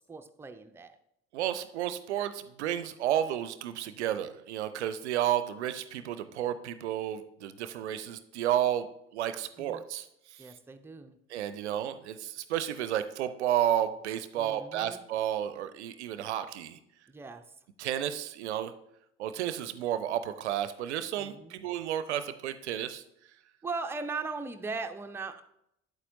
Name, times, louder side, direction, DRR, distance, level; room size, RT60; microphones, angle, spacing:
voice 1, 0.1-1.0 9.6-9.8 10.4-11.2 14.4-15.0 17.1-17.4 21.2-21.6 23.6-25.4, right 4 dB, 5° right, 6 dB, 0.5 m, -39 dB
voice 2, 1.3-8.9 9.1-10.1 11.3-16.8 17.8-18.7 19.2-23.0, right 11 dB, 75° right, 12 dB, 0.5 m, -32 dB
8.3 x 8.2 x 2.6 m, 0.79 s
figure-of-eight pair, 55°, 34 cm